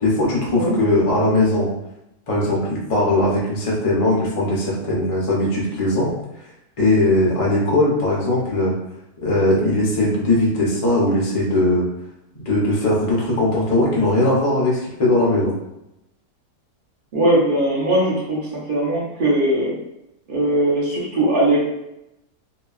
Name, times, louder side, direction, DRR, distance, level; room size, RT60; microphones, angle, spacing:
voice 1, 0.0-1.7 2.3-6.1 6.8-8.7 9.2-11.9 12.5-15.5, left 1 dB, 55° left, -4 dB, 0.3 m, -19 dB
voice 2, 17.1-19.7 20.3-21.6, right 1 dB, 45° right, -5 dB, 0.7 m, -19 dB
2.7 x 2.3 x 2.3 m, 0.86 s
omnidirectional pair, 1.6 m